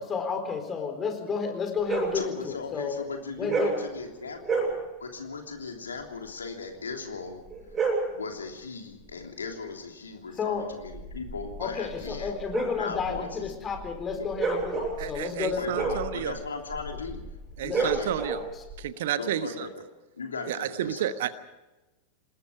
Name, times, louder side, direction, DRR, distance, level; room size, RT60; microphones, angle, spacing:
voice 1, 0.0-3.0 3.4-4.1 10.3-10.7 11.6-15.7 17.6-17.9 18.5-18.7, left 5 dB, 20° left, 6 dB, 4.2 m, -32 dB
sound 1, 1.8-2.2 3.4-3.9 4.4-4.8 7.5-8.2 10.7-18.7, right 4 dB, 20° right, 8.0 m, -31 dB
voice 2, 2.1-4.6 5.0-7.4 8.1-12.3 12.8-13.3 15.6-17.2 17.7-18.1 19.2-19.7 20.1-21.1, left 4 dB, 70° left, 3 dB, 3.2 m, -37 dB
voice 3, 15.0-16.4 17.6-18.4 18.8-19.7 20.5-21.3, right 10 dB, 55° right, 12 dB, 1.2 m, -31 dB
26.5 x 20.5 x 5.0 m, 1.1 s
figure-of-eight pair, 90°, 0 cm